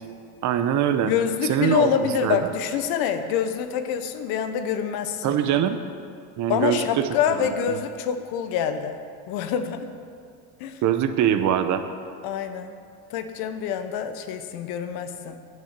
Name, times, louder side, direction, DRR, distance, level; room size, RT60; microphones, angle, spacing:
voice 1, 0.4-1.1 1.5-1.9 2.2-2.4 5.2-5.8 6.4-7.1 7.4-7.8 10.8-11.8, right 10 dB, 50° right, 9 dB, 0.7 m, -23 dB
voice 2, 1.0-5.4 6.5-9.0 9.3-9.9 10.6-10.8 12.2-12.7 13.1-15.5, left 8 dB, 65° left, 9 dB, 0.9 m, -26 dB
9.2 x 6.1 x 7.3 m, 2.3 s
supercardioid pair, 110°, 39 cm